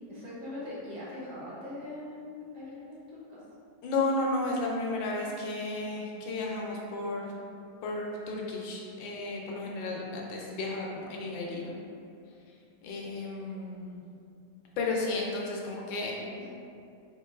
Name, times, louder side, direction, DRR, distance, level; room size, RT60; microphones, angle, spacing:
voice 1, 0.1-3.0 3.3-3.4 16.2-16.5, left 1 dB, 65° right, -8 dB, 1.3 m, -41 dB
voice 2, 3.8-7.3 7.8-11.7 12.8-14.0 14.8-16.2, left 2 dB, 80° left, -2 dB, 1.3 m, -33 dB
3.7 x 3.4 x 2.3 m, 2.5 s
omnidirectional pair, 2.1 m